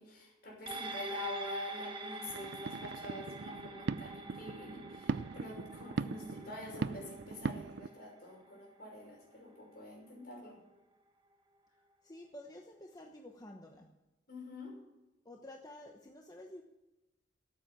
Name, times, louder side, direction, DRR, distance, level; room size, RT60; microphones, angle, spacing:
voice 1, 0.0-10.6 14.3-14.8, left 1 dB, 55° left, -1 dB, 5.8 m, -46 dB
sound 1, 0.7-9.3 9.7-9.8, right 2 dB, 25° right, 1.3 m, -46 dB
sound 2, 2.3-7.9, right 4 dB, 60° right, 0.4 m, -40 dB
voice 2, 12.0-13.9 15.2-16.6, left 1 dB, 20° left, 2 dB, 1.0 m, -51 dB
13.5 x 8.8 x 8.8 m, 1.0 s
head